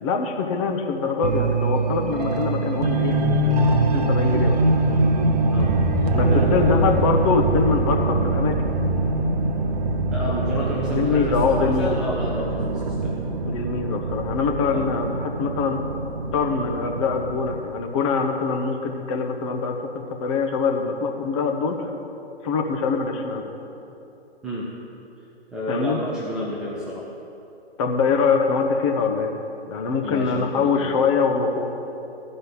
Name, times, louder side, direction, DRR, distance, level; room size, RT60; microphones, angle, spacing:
voice 1, 0.0-4.6 6.1-8.6 10.9-11.9 13.4-15.8 16.3-21.9 22.4-23.4 25.7-26.0 27.8-29.3 29.7-31.7, left 4 dB, 30° left, 3 dB, 1.0 m, -24 dB
sound 1, 1.2-17.6, right 2 dB, 40° right, 0.9 m, -23 dB
voice 2, 6.3-6.9 10.1-13.1 14.7-14.9 24.4-24.7 25.5-27.1 30.0-31.0, equal, ahead, -7 dB, 0.5 m, -30 dB
14.0 x 5.4 x 7.3 m, 2.9 s
figure-of-eight pair, 125°, 32 cm